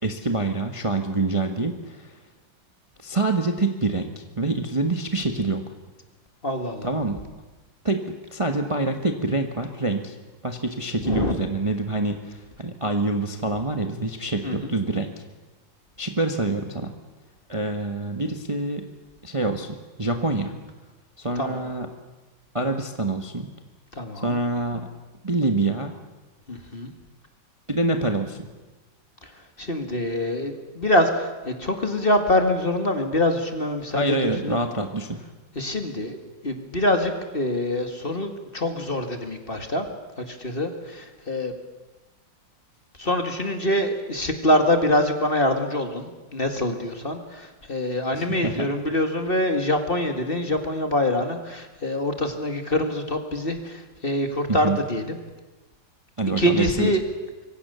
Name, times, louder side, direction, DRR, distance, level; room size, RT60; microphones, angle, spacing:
voice 1, 0.0-2.2 3.0-5.6 6.8-7.2 7.8-8.0 8.3-10.1 10.4-15.1 16.0-16.9 17.5-18.8 19.2-20.6 21.2-21.9 22.5-23.5 24.2-24.9 25.2-25.9 27.7-28.5 33.9-35.2 48.1-48.7 54.5-54.8 56.2-56.9, right 2 dB, 20° right, 5 dB, 1.3 m, -26 dB
voice 2, 6.4-6.9 11.0-11.3 14.4-14.7 21.4-21.6 23.9-24.4 26.5-26.9 29.2-29.3 29.6-34.6 35.5-36.2 36.4-39.9 40.2-41.5 43.0-55.2 56.4-57.0, left 1 dB, 30° left, 6 dB, 2.2 m, -25 dB
25.5 x 23.5 x 7.0 m, 1.2 s
omnidirectional pair, 2.1 m